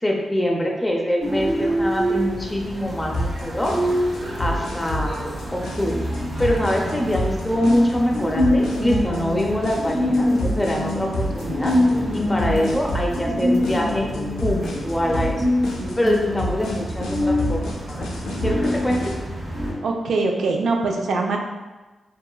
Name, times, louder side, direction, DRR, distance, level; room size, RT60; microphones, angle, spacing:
voice 1, 0.0-3.8 4.4-5.9 6.4-11.7 12.1-14.1 14.4-15.5 16.0-17.6 17.9-18.1 18.4-19.0, equal, 15° left, 0 dB, 0.5 m, -24 dB
sound 1, 1.2-19.7, left 1 dB, 35° right, 0.7 m, -25 dB
sound 2, 3.1-19.1, equal, 90° left, 0.4 m, -30 dB
voice 2, 17.0-17.4 19.8-21.4, right 3 dB, 80° right, 1 dB, 0.3 m, -23 dB
2.9 x 2.2 x 2.3 m, 1.2 s
cardioid pair, 60°, 0 cm